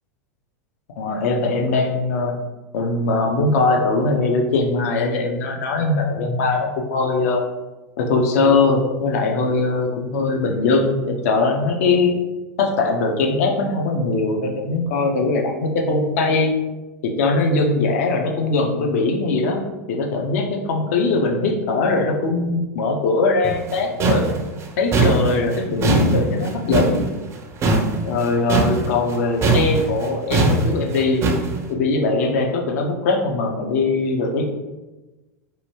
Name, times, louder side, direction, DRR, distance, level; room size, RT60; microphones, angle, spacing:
voice 1, 1.0-2.3 2.7-7.4 8.0-12.1 12.6-16.5 17.0-19.6 19.9-24.3 24.8-27.0 28.0-31.2 31.7-34.5, left 3 dB, 60° left, 2 dB, 0.5 m, -21 dB
sound 1, 23.4-29.2 29.4-31.6, right 3 dB, 30° right, 0.4 m, -20 dB
2.8 x 2.3 x 2.9 m, 1.1 s
figure-of-eight pair, 90°, 9 cm